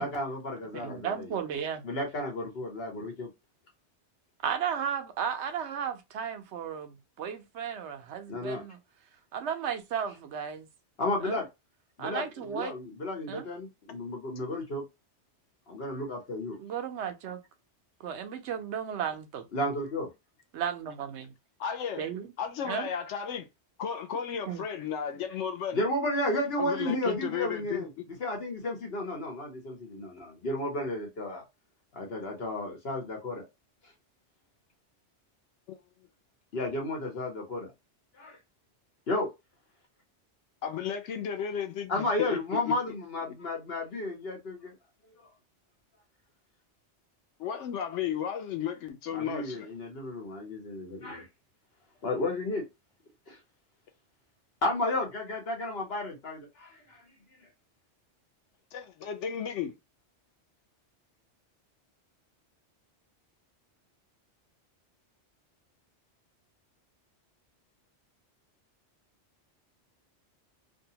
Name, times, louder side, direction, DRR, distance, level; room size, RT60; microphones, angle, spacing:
voice 1, 0.0-1.3 1.8-3.3 8.3-8.6 11.0-11.5 12.0-14.8 15.7-16.6 19.5-20.1 25.7-31.4 31.9-33.4 36.5-37.7 38.1-38.4 39.1-39.3 41.9-44.7 49.1-51.3 52.0-52.7 53.3-53.4 54.6-57.0, left 1 dB, 60° left, 1.2 m, -33 dB
voice 2, 0.7-1.9 4.4-8.8 9.3-10.7 11.2-11.4 12.0-12.7 13.3-13.5 16.6-17.4 18.0-19.5 20.5-21.3 22.0-22.3 22.6-22.9 24.5-24.6, right 8 dB, 75° right, 0.9 m, -34 dB
voice 3, 21.6-22.1 22.4-23.5 23.8-25.8 26.6-28.0 35.7-35.8 40.6-42.4 42.7-42.8 47.4-49.7 58.7-59.7, left 8 dB, 80° left, 0.9 m, -34 dB
2.7 x 2.2 x 2.8 m
omnidirectional pair, 1.2 m